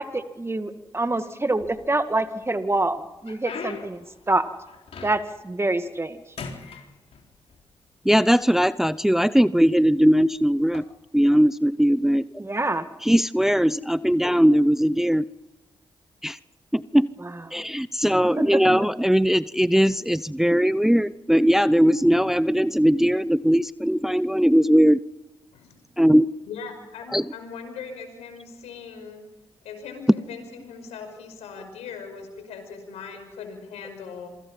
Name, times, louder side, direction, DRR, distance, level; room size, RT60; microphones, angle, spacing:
voice 1, 0.0-4.0 4.3-4.4 5.0-6.2 12.4-12.8 18.7-18.8, right 2 dB, 25° right, 9 dB, 2.0 m, -26 dB
sound 1, 1.5-2.2 2.7-5.5 5.8-6.1 6.4-7.6 8.4-8.5 9.2-9.4 10.6-10.8, left 5 dB, 65° left, 4.0 m, -39 dB
voice 2, 8.0-10.8 11.1-12.3 13.0-15.2 16.2-16.4 16.7-17.1 17.5-25.0 26.0-26.3 27.1-27.2, equal, 5° right, 16 dB, 0.7 m, -19 dB
voice 3, 26.5-29.2 29.6-34.3, left 5 dB, 85° left, 6 dB, 5.7 m, -39 dB
27.5 x 24.0 x 5.6 m, 1.0 s
hypercardioid pair, 40°, 11 cm